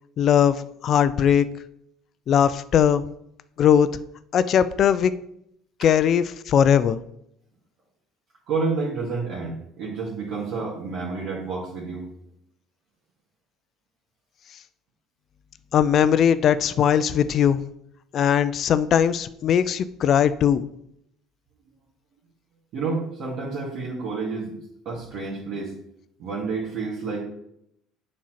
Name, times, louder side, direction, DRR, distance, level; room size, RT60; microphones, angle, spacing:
voice 1, 0.2-1.5 2.3-3.0 3.6-3.9 4.3-5.1 5.8-7.0 15.7-17.6 18.1-20.6, left 8 dB, 50° left, 14 dB, 0.4 m, -19 dB
voice 2, 8.5-12.1 22.7-24.6 24.9-25.7 26.2-27.2, right 4 dB, 60° right, -4 dB, 2.1 m, -29 dB
7.4 x 4.3 x 5.8 m, 0.76 s
supercardioid pair, 110°, 0 cm